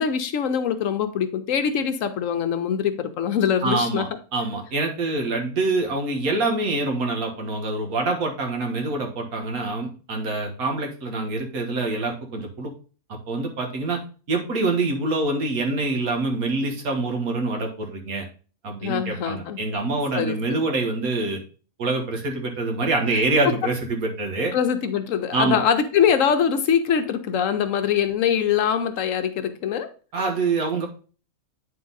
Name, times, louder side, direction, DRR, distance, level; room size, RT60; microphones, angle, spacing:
voice 1, 0.0-4.1 18.8-19.6 20.1-20.4 23.4-23.5 24.5-29.9, left 8 dB, 70° left, 1.1 m, -23 dB
voice 2, 3.6-12.7 13.1-14.0 14.3-18.3 18.6-21.4 21.8-24.5 25.3-25.6 30.1-30.9, right 3 dB, 80° right, 1.8 m, -25 dB
8.7 x 3.8 x 3.8 m
omnidirectional pair, 1.5 m